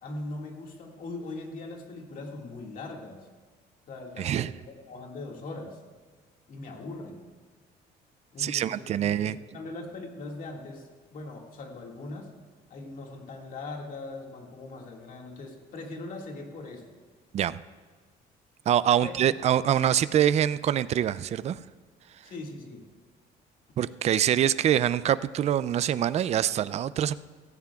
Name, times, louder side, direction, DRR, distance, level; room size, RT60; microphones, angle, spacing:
voice 1, 0.0-3.3 3.9-5.8 6.5-7.3 8.3-12.4 12.7-17.0 19.0-19.4 22.2-22.8, left 2 dB, 55° left, 1 dB, 2.0 m, -40 dB
voice 2, 4.2-4.5 8.4-9.4 17.3-17.6 18.7-21.6 23.8-27.1, right 10 dB, 40° right, 16 dB, 0.4 m, -25 dB
16.5 x 14.5 x 2.4 m, 1.4 s
cardioid pair, 110°, 17 cm